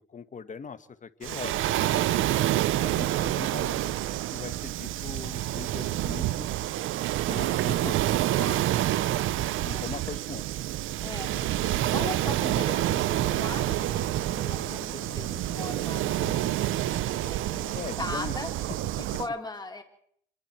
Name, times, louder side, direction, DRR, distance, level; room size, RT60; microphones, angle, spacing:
voice 1, 0.1-2.2 2.8-4.0 4.3-6.5 7.3-8.0 8.4-8.8 9.6-10.4 16.2-16.4 17.7-18.3, left 6 dB, 40° left, 11 dB, 1.7 m, -40 dB
Waves surf, 1.2-19.3, right 14 dB, 80° right, 0.8 m, -28 dB
voice 2, 2.9-3.3 8.4-8.6 9.6-9.9 11.0-14.0 14.3-18.5 19.0-19.8, left 3 dB, 20° left, 4 dB, 4.4 m, -39 dB
sound 1, 11.3-19.0, left 5 dB, 60° left, 7.6 m, -48 dB
27.0 x 21.0 x 4.6 m, 0.64 s
cardioid pair, 90°, 20 cm